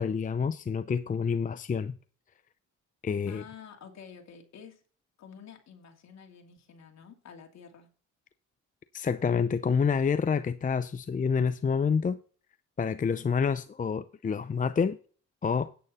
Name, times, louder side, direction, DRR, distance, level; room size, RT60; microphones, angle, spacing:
voice 1, 0.0-2.0 3.0-3.4 8.9-12.2 12.8-15.0 15.4-15.7, left 6 dB, 25° left, 0.6 m, -28 dB
voice 2, 3.3-4.8 5.2-7.9, left 7 dB, 60° left, 2.8 m, -49 dB
10.0 x 9.2 x 4.2 m
cardioid pair, 90°, 30 cm